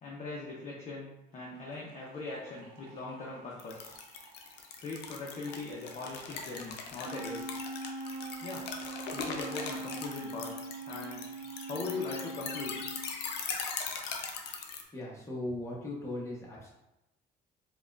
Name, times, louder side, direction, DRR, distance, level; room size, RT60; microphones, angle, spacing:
voice 1, 0.0-1.1 1.3-4.0 4.8-7.6 8.4-8.7 9.1-10.5 10.9-11.2 11.6-12.8, left 3 dB, 40° left, -4 dB, 0.7 m, -40 dB
sound 1, 1.3-14.6, right 2 dB, 90° right, 0.8 m, -59 dB
sound 2, 3.6-14.8, left 5 dB, 90° left, 0.5 m, -40 dB
Wind instrument woodwind instrument, 7.0-13.2, right 2 dB, 55° right, 0.5 m, -42 dB
voice 2, 14.9-16.7, left 1 dB, 15° left, -5 dB, 1.0 m, -38 dB
4.1 x 2.3 x 2.4 m, 0.89 s
cardioid pair, 110°, 17 cm